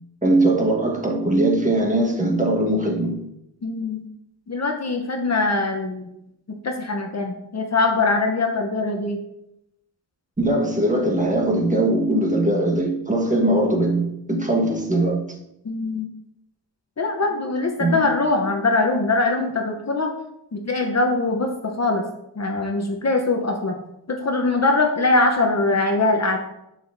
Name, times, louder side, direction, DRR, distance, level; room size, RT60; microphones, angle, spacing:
voice 1, 0.2-3.2 10.4-15.2 17.8-18.0, right 1 dB, 20° right, -1 dB, 1.4 m, -20 dB
voice 2, 3.6-4.0 4.5-6.1 6.5-9.2 15.6-16.1 17.0-20.1 20.5-22.0 22.4-23.8 24.1-26.4, left 3 dB, 40° left, 3 dB, 0.8 m, -22 dB
7.7 x 6.9 x 2.6 m, 0.83 s
wide cardioid pair, 95°, 42 cm